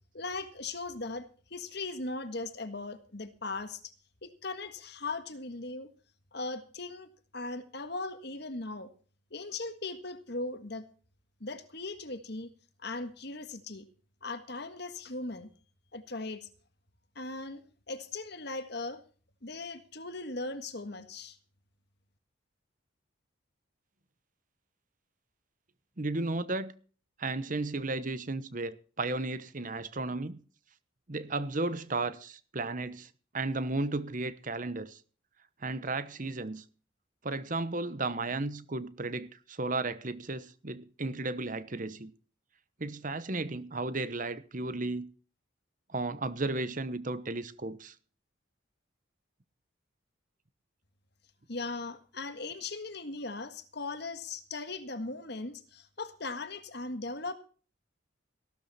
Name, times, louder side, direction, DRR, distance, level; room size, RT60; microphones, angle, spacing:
voice 1, 0.1-3.9 4.2-5.9 6.3-8.9 9.3-10.9 11.4-12.5 12.8-13.8 14.2-15.5 15.9-16.5 17.1-17.6 17.9-19.0 19.4-21.4 51.5-57.3, left 3 dB, 55° left, 1.7 m, -38 dB
voice 2, 26.0-26.7 27.2-30.4 31.1-35.0 35.6-36.6 37.2-42.1 42.8-45.1 45.9-47.9, right 2 dB, 40° right, 1.0 m, -34 dB
15.5 x 12.5 x 4.2 m
head